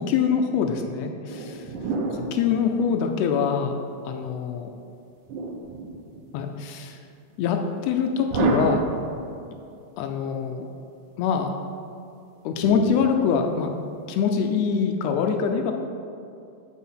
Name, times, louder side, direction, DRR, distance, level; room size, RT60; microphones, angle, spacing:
voice 1, 0.0-1.7 2.1-4.7 6.3-7.0 7.4-8.8 10.0-10.7 11.2-11.5 12.4-13.7 14.1-15.7, left 6 dB, 85° left, 5 dB, 1.5 m, -24 dB
sound 1, 1.3-3.6 5.3-6.5 8.3-9.6 12.6-14.1, right 3 dB, 80° right, 2.2 m, -30 dB
8.6 x 4.0 x 5.6 m, 2.5 s
omnidirectional pair, 3.5 m